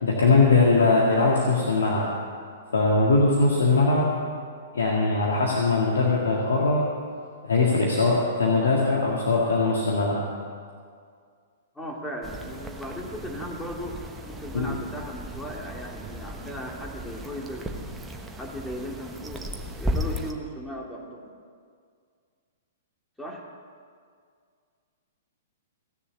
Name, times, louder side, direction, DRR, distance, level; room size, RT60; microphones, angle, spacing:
voice 1, 0.0-2.1 2.7-4.1 4.7-6.8 7.5-10.2 14.5-14.8, left 3 dB, 70° left, -3 dB, 1.8 m, -21 dB
voice 2, 11.7-14.0 14.2-17.7 18.4-19.4 19.8-21.3 23.2-23.4, equal, 5° left, -1 dB, 2.3 m, -37 dB
sound 1, 12.2-20.3, equal, 10° right, 1.1 m, -35 dB
16.0 x 6.9 x 8.4 m, 2.1 s
figure-of-eight pair, 110°, 0 cm